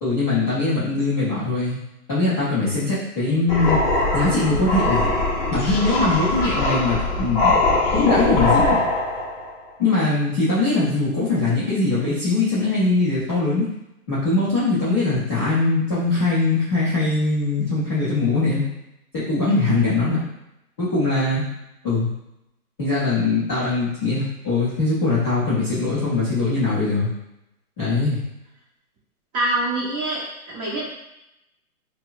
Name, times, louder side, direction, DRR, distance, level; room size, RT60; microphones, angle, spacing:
voice 1, 0.0-1.8 2.1-3.8 4.1-5.1 5.5-7.5 7.9-8.8 9.8-13.7 14.1-18.6 19.1-20.2 20.8-21.4 21.8-22.1 22.8-27.1 27.8-28.2, left 3 dB, 10° left, -15 dB, 0.4 m, -21 dB
sound 1, 3.5-9.5, left 2 dB, 30° left, 0.8 m, -21 dB
voice 2, 29.3-30.9, right 1 dB, 20° right, -6 dB, 0.9 m, -25 dB
4.4 x 2.1 x 2.5 m, 0.87 s
hypercardioid pair, 140°, 45 cm